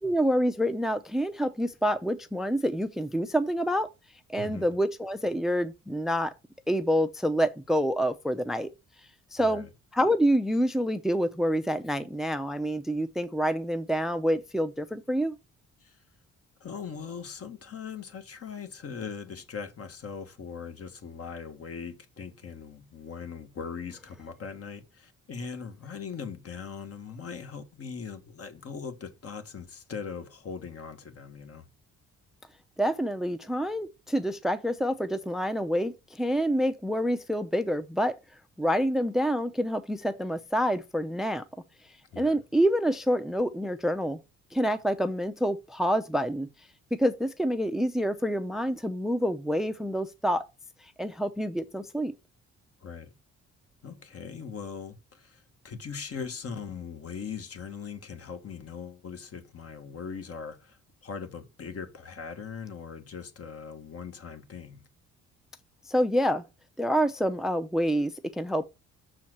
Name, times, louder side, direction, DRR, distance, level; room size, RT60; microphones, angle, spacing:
voice 1, 0.0-3.9 4.3-6.3 6.7-8.7 9.3-15.4 32.8-38.2 38.6-41.4 42.2-44.2 44.5-46.5 47.0-50.4 50.8-52.1 65.9-66.4 66.8-68.7, equal, ahead, 0.6 m, -27 dB
voice 2, 9.4-9.7 15.8-16.0 16.6-31.7 42.1-42.4 52.8-53.1 53.8-64.8, left 6 dB, 50° left, 1.6 m, -40 dB
6.4 x 4.4 x 6.0 m
cardioid pair, 90°, 30 cm